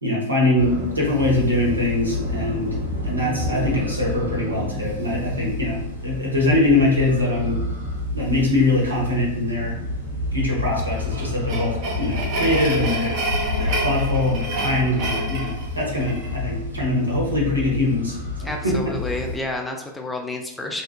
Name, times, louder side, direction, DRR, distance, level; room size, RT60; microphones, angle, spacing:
voice 1, 0.0-2.7 3.0-7.6 8.1-9.7 10.3-13.2 13.6-18.9, left 1 dB, 85° right, -4 dB, 0.8 m, -22 dB
sound 1, 0.6-19.4, left 2 dB, 90° left, 0.6 m, -29 dB
sound 2, 10.8-16.4, right 2 dB, 45° right, 0.7 m, -29 dB
voice 2, 18.4-20.8, left 2 dB, 10° left, 2 dB, 0.3 m, -30 dB
2.7 x 2.2 x 2.2 m, 0.79 s
figure-of-eight pair, 90°, 0 cm